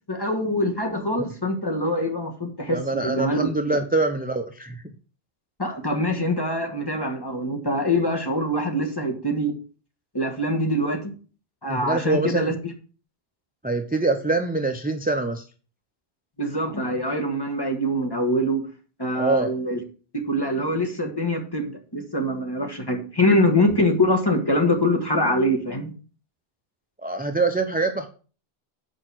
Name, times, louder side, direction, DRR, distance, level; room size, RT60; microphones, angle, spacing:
voice 1, 0.1-3.5 5.6-9.6 10.1-11.0 11.6-12.7 16.4-18.6 19.0-19.8 20.1-25.9, left 1 dB, 20° left, 3 dB, 1.6 m, -24 dB
voice 2, 2.7-4.8 11.7-12.5 13.6-15.4 19.1-19.5 27.0-28.1, right 3 dB, 10° right, 6 dB, 0.5 m, -24 dB
8.2 x 5.0 x 6.1 m, 0.38 s
omnidirectional pair, 1.1 m